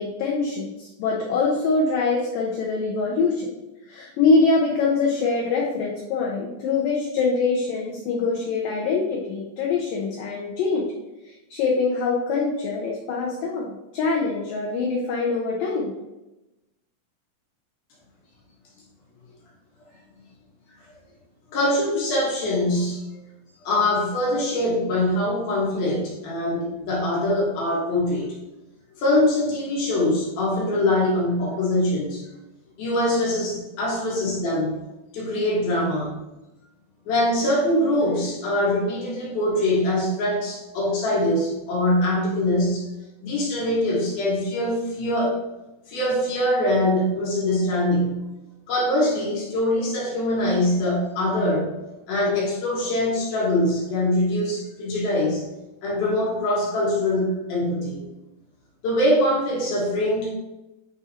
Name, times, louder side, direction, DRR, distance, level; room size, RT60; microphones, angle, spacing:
voice 1, 0.0-3.5 3.9-10.9 11.3-15.9, left 4 dB, 90° left, -1 dB, 1.9 m, -24 dB
voice 2, 21.5-23.0 23.6-28.4 29.0-32.2 32.8-34.8 35.1-36.1 37.1-42.8 43.2-45.4 45.9-48.2 48.7-51.7 52.1-55.4 55.8-58.0 58.8-60.3, left 1 dB, 60° left, -5 dB, 3.2 m, -23 dB
9.6 x 3.7 x 4.3 m, 1.0 s
omnidirectional pair, 5.1 m